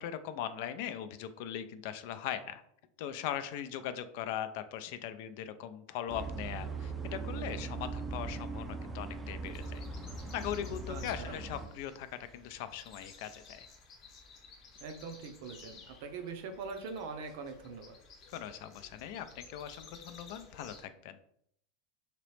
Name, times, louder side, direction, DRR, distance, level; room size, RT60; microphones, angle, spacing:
voice 1, 0.0-2.6 3.0-9.8 10.3-12.1 12.3-13.7 18.3-21.2, left 10 dB, 60° left, 11 dB, 0.3 m, -40 dB
sound 1, 6.1-11.7, right 3 dB, 15° right, 0.4 m, -40 dB
sound 2, 9.4-20.8, left 4 dB, 35° left, 0.8 m, -55 dB
voice 2, 10.9-11.4 14.8-18.0, right 4 dB, 65° right, 6 dB, 0.6 m, -42 dB
2.9 x 2.9 x 3.2 m, 0.69 s
supercardioid pair, 140°, 0 cm